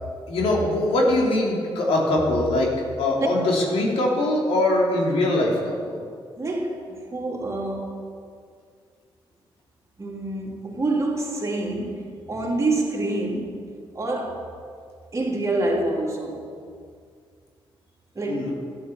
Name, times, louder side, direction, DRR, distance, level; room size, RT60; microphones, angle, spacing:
voice 1, 0.3-2.7 3.0-6.0 18.3-18.5, left 1 dB, 85° left, 3.0 m, -22 dB
voice 2, 6.4-7.9 10.0-13.6 13.9-14.5 15.1-16.5 18.1-18.5, right 2 dB, 30° right, 3.1 m, -27 dB
13.0 x 10.0 x 7.2 m
cardioid pair, 80°, 10 cm